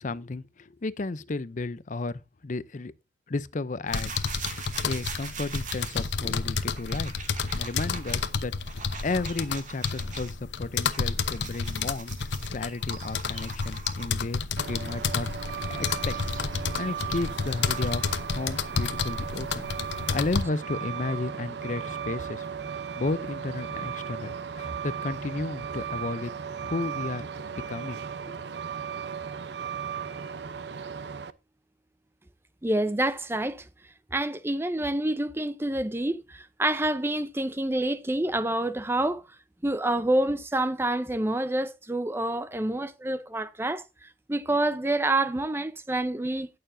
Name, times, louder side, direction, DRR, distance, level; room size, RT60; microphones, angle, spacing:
voice 1, 0.0-2.9 3.3-4.3 4.8-7.1 7.6-8.5 9.0-12.1 12.5-15.3 15.7-16.1 16.8-18.0 18.3-22.5 23.0-26.3 26.6-27.3 27.5-28.0 28.3-28.4, left 3 dB, 45° left, 0.6 m, -33 dB
sound 1, 3.9-20.4, left 5 dB, 80° left, 0.9 m, -31 dB
sound 2, 3.9-10.3 10.7-14.3 14.9-18.3, right 5 dB, 45° right, 2.3 m, -43 dB
Truck, 14.6-31.3, right 7 dB, 70° right, 0.7 m, -36 dB
voice 2, 32.6-33.6 34.1-39.2 39.6-43.8 44.3-46.5, right 1 dB, 15° right, 0.6 m, -27 dB
18.0 x 6.8 x 2.7 m
head